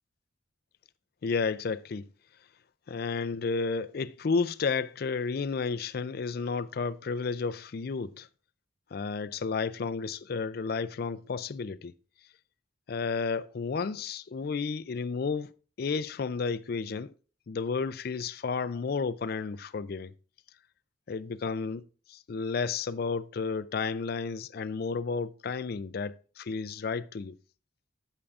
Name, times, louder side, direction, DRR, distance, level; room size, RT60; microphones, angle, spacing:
voice 1, 1.2-2.1 2.9-8.3 8.9-11.9 12.9-15.5 15.8-17.1 17.5-20.1 21.1-21.8 22.1-27.4, left 4 dB, 50° left, 0.4 m, -32 dB
8.6 x 8.2 x 2.4 m
head